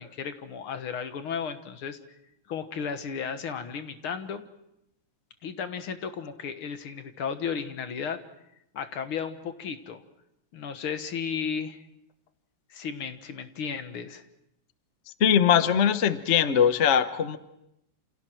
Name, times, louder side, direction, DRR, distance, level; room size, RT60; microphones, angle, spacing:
voice 1, 0.0-2.0 2.5-4.4 5.4-8.2 8.7-10.0 10.5-11.8 12.7-14.2, left 6 dB, 75° left, 9 dB, 2.2 m, -34 dB
voice 2, 15.2-17.4, left 8 dB, 45° left, 11 dB, 0.9 m, -21 dB
28.5 x 28.0 x 4.6 m, 0.81 s
omnidirectional pair, 2.4 m